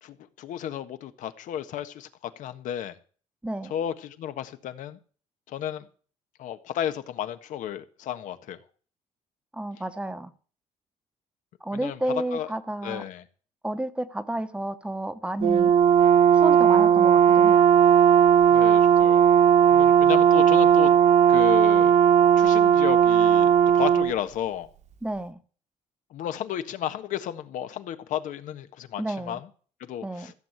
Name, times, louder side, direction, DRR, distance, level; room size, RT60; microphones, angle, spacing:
voice 1, 0.0-2.9 3.7-5.0 5.5-5.8 6.4-8.6 11.7-12.0 12.3-12.5 12.8-13.2 18.5-19.2 19.7-20.9 21.3-22.0 22.4-24.7 26.1-29.4 29.9-30.3, left 10 dB, 75° left, 1.4 m, -33 dB
voice 2, 9.5-10.3 11.6-13.0 13.6-15.7 16.3-17.6 25.0-25.4 29.0-29.4 30.0-30.3, right 1 dB, 10° right, 1.0 m, -31 dB
Brass instrument, 15.4-24.1, right 9 dB, 65° right, 1.5 m, -17 dB
15.0 x 7.6 x 8.0 m
cardioid pair, 135°, 13 cm